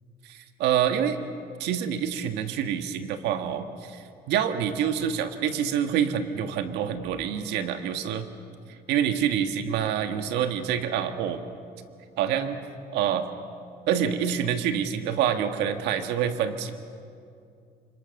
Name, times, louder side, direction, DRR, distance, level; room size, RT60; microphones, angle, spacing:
voice 1, 0.2-1.2 1.6-8.3 8.9-11.4 12.2-12.6 12.9-13.2 13.9-16.7, right 9 dB, 90° right, 7 dB, 1.7 m, -27 dB
30.0 x 25.5 x 6.6 m, 2.4 s
cardioid pair, 110°, 17 cm